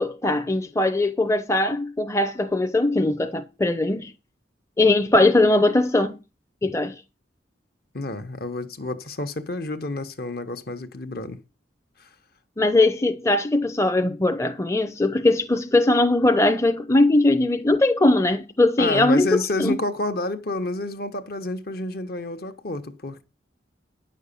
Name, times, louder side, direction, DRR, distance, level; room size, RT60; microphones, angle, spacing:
voice 1, 0.0-4.1 4.8-6.2 6.6-7.0 12.6-19.3 19.6-19.8, left 2 dB, 15° left, 0.7 m, -20 dB
voice 2, 7.9-11.4 12.0-12.1 18.8-23.2, left 2 dB, 55° left, 1.2 m, -29 dB
9.9 x 6.5 x 6.8 m
head